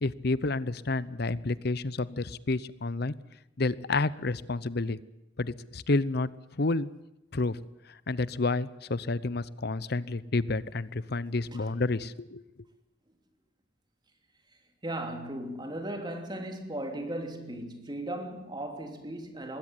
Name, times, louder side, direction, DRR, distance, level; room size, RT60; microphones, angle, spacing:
voice 1, 0.0-3.1 3.6-5.0 5.4-6.3 6.6-6.9 7.3-7.6 8.1-12.4, left 3 dB, 55° left, 0.8 m, -29 dB
voice 2, 14.8-19.6, right 1 dB, 25° right, 3.0 m, -37 dB
21.0 x 16.5 x 9.8 m
head